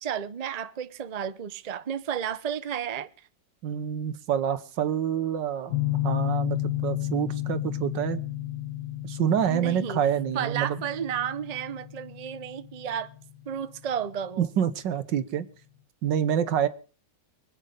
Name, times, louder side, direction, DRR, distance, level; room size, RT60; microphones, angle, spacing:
voice 1, 0.0-3.1 9.4-10.0 10.3-13.1 13.5-14.5, right 8 dB, 50° right, 0.4 m, -32 dB
voice 2, 3.6-5.8 6.0-8.2 9.0-10.8 14.4-15.5 16.0-16.7, right 9 dB, 80° right, 1.7 m, -27 dB
sound 1, 5.7-14.4, left 15 dB, 70° left, 1.8 m, -32 dB
24.5 x 8.9 x 5.1 m
omnidirectional pair, 1.9 m